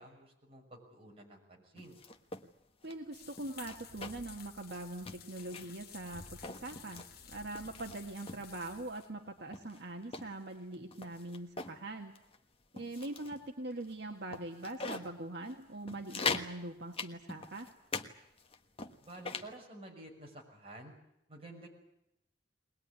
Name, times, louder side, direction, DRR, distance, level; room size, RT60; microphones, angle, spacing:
voice 1, 0.0-2.0 19.0-20.9 21.3-21.7, right 1 dB, 30° right, 0 dB, 6.1 m, -51 dB
sound 1, 1.7-2.4 2.8-2.9 3.4-4.4 4.6-4.8 5.0-5.8 6.3-7.1 7.5-8.4 9.0-9.1 9.5-11.8 12.2-12.4 12.8-13.4 13.8-13.9 14.3-15.1 15.5-15.6 15.9-16.5 16.9-18.1 18.4-19.5, left 4 dB, 30° left, 1.3 m, -41 dB
voice 2, 2.8-12.1 12.7-17.7, right 2 dB, 65° right, 3 dB, 1.7 m, -42 dB
sound 2, 3.1-9.1, left 6 dB, 55° left, 1.6 m, -53 dB
21.5 x 20.0 x 9.7 m, 0.83 s
head